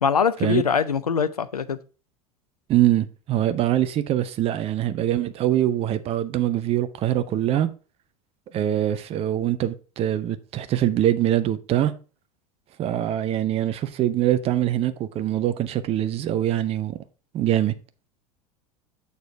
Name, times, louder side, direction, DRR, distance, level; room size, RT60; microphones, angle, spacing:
voice 1, 0.0-1.8, left 6 dB, 85° left, 0.5 m, -22 dB
voice 2, 2.7-7.7 8.5-11.9 12.8-17.0 17.3-17.7, right 12 dB, 30° right, 0.6 m, -23 dB
6.9 x 4.1 x 4.5 m
figure-of-eight pair, 75°, 19 cm